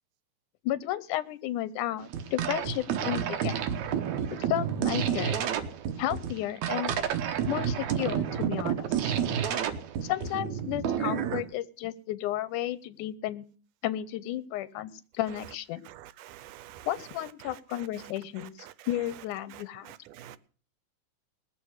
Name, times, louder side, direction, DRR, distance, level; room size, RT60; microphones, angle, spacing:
voice 1, 0.6-3.6 4.3-5.5 6.0-6.9 7.5-8.9 10.0-13.4 13.8-15.8 16.9-19.9, left 13 dB, 80° left, 2.2 m, -33 dB
sound 1, 2.0-11.4, right 9 dB, 70° right, 2.4 m, -30 dB
voice 2, 15.9-16.9 19.9-20.4, right 12 dB, 90° right, 2.3 m, -47 dB
20.0 x 6.8 x 6.4 m
omnidirectional pair, 3.6 m